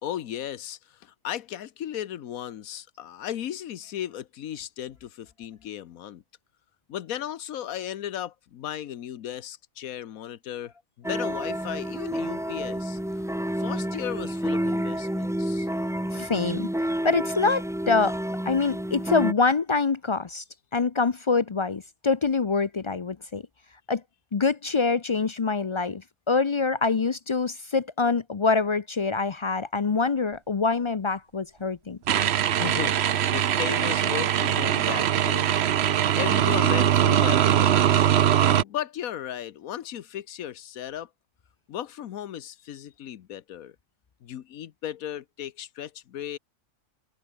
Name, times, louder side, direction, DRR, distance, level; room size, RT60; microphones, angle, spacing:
voice 1, 0.0-6.2 6.9-10.7 11.0-13.0 13.6-15.7 32.4-35.6 36.1-38.2 38.5-41.1 41.7-43.8 44.2-46.4, left 11 dB, 90° left, 1.3 m, -36 dB
sound 1, 11.0-19.3, equal, 5° right, 0.5 m, -29 dB
voice 2, 16.1-16.7 17.0-18.1 18.5-20.4 20.7-23.4 23.9-24.0 24.3-26.0 26.3-32.0, left 4 dB, 50° left, 0.3 m, -25 dB
sound 2, 32.1-38.6, right 10 dB, 60° right, 0.9 m, -22 dB
omnidirectional pair, 1.4 m